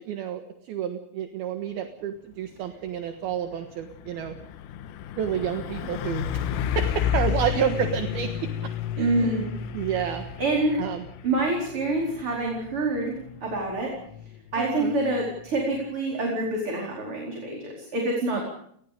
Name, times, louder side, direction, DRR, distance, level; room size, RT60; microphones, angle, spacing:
voice 1, 0.0-4.3 5.2-6.5 6.8-9.4 9.7-10.3 10.8-11.1 14.6-15.0 18.3-18.4, right 9 dB, 65° right, 6 dB, 2.8 m, -30 dB
Truck, 2.7-3.0 3.3-15.9, left 9 dB, 90° left, 3.9 m, -32 dB
voice 2, 9.0-9.5 10.4-10.8 11.2-13.2 13.4-13.9 14.5-18.4, right 2 dB, 30° right, -1 dB, 5.0 m, -26 dB
29.0 x 21.0 x 5.2 m, 0.66 s
omnidirectional pair, 5.8 m